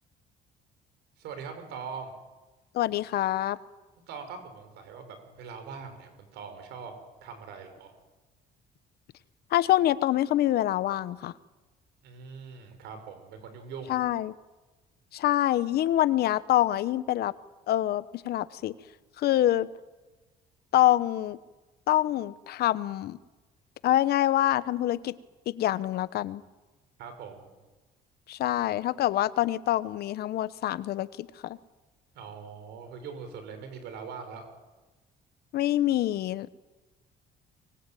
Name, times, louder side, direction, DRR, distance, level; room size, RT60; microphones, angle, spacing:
voice 1, 1.2-2.1 4.1-6.9 7.2-7.9 12.0-13.9 27.0-27.5 32.1-34.5, right 6 dB, 85° right, 7 dB, 6.0 m, -42 dB
voice 2, 2.7-3.6 9.5-11.3 13.9-14.3 15.1-17.3 17.7-18.7 19.2-19.7 20.7-21.4 21.9-23.2 23.8-25.2 25.5-26.4 28.3-31.6 35.5-36.5, left 13 dB, 70° left, 16 dB, 1.1 m, -26 dB
24.0 x 20.5 x 9.3 m, 1.2 s
cardioid pair, 110°, 17 cm